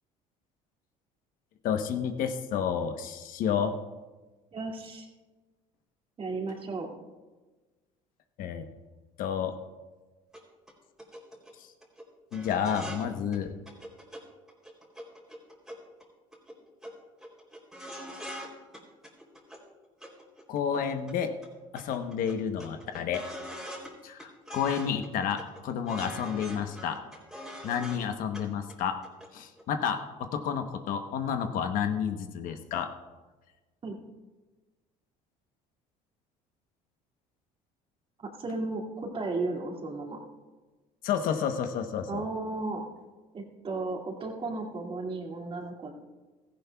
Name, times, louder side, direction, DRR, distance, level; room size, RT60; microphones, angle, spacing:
voice 1, 1.6-3.8 8.4-8.6 9.2-9.5 11.6-11.7 12.3-13.5 20.5-21.3 21.7-23.2 24.0-27.0 27.6-29.0 29.3-32.9 41.0-42.2, left 7 dB, 65° left, 7 dB, 1.0 m, -30 dB
voice 2, 4.5-5.1 6.2-6.9 27.9-28.0 33.8-34.0 38.2-40.2 42.1-42.9 43.3-45.9, right 3 dB, 35° right, 1 dB, 2.3 m, -34 dB
sound 1, 10.3-10.4 10.7-10.8 11.0-11.5 11.8-12.0 12.3-13.1 13.3-13.4 13.7-14.2 14.5-16.0 16.3-16.6 16.8-16.9 17.2-18.5 18.7-19.6 20.0-21.1 21.4-21.5 21.8-23.9 24.2-25.1 25.4-28.1 28.3-28.4 28.7-29.3 29.6-29.7, equal, 5° right, 3.3 m, -43 dB
16.5 x 14.5 x 2.3 m, 1.3 s
supercardioid pair, 100°, 16 cm